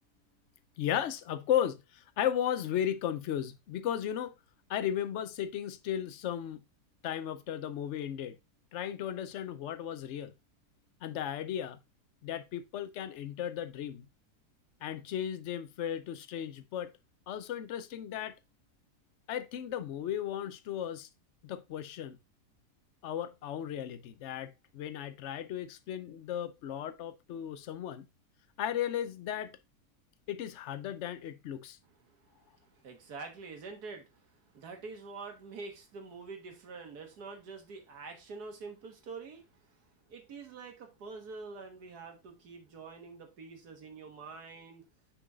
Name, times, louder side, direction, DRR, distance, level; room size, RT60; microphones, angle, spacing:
voice 1, 0.8-4.3 4.7-6.6 7.0-8.4 8.7-10.3 11.0-11.8 12.2-14.1 14.8-16.9 17.3-18.3 19.3-21.1 21.4-22.2 23.0-28.0 28.6-29.5 30.3-31.8, left 10 dB, 60° left, 0.8 m, -35 dB
voice 2, 32.8-34.2 34.5-39.5 40.1-44.8, right 4 dB, 70° right, 2.0 m, -46 dB
6.4 x 4.7 x 3.7 m
omnidirectional pair, 1.7 m